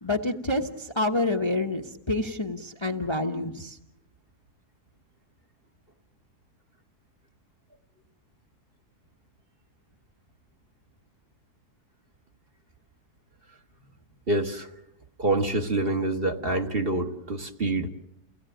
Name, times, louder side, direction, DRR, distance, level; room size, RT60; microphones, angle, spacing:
voice 1, 0.0-3.8, left 2 dB, 20° left, 4 dB, 1.0 m, -28 dB
voice 2, 14.3-14.7 15.2-17.9, right 2 dB, 40° right, 4 dB, 1.5 m, -26 dB
29.5 x 17.0 x 9.1 m, 0.83 s
omnidirectional pair, 1.7 m